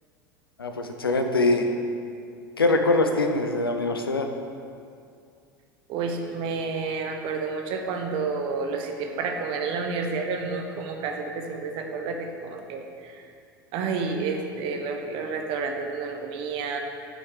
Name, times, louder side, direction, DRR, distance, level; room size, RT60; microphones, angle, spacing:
voice 1, 0.6-1.7 2.6-4.3, left 2 dB, 85° left, 5 dB, 0.7 m, -23 dB
voice 2, 5.9-13.2 13.7-16.8, right 4 dB, 45° right, 4 dB, 1.1 m, -30 dB
6.5 x 6.3 x 6.4 m, 2.4 s
figure-of-eight pair, 80°, 12 cm